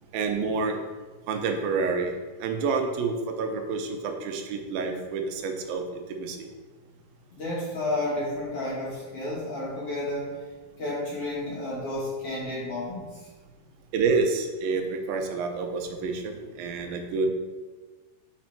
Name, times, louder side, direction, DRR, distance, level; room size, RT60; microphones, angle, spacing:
voice 1, 0.1-0.8 1.3-2.1 2.4-6.5 13.9-17.3, right 4 dB, 85° right, 4 dB, 2.5 m, -28 dB
voice 2, 7.3-10.4 10.8-13.3, left 1 dB, 55° left, -6 dB, 1.9 m, -31 dB
6.5 x 4.2 x 4.5 m, 1.3 s
omnidirectional pair, 4.0 m